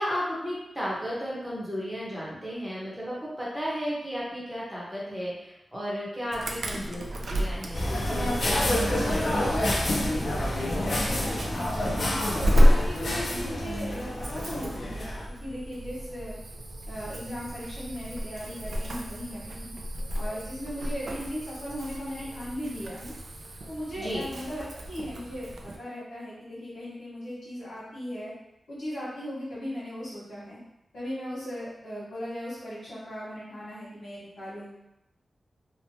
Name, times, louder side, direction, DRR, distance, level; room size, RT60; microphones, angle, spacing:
voice 1, 0.0-10.3 24.0-24.3, equal, 5° right, -7 dB, 0.9 m, -34 dB
Insect / Alarm, 6.3-25.8, equal, 65° right, 0.3 m, -31 dB
sound 1, 7.7-15.3, left 1 dB, 55° left, 0.5 m, -28 dB
voice 2, 11.9-15.1 15.4-16.4 16.9-19.7 20.1-23.1 23.7-28.3 28.7-30.6 30.9-34.7, equal, 85° left, -9 dB, 1.2 m, -37 dB
2.9 x 2.1 x 2.7 m, 0.90 s
wide cardioid pair, 95°, 0 cm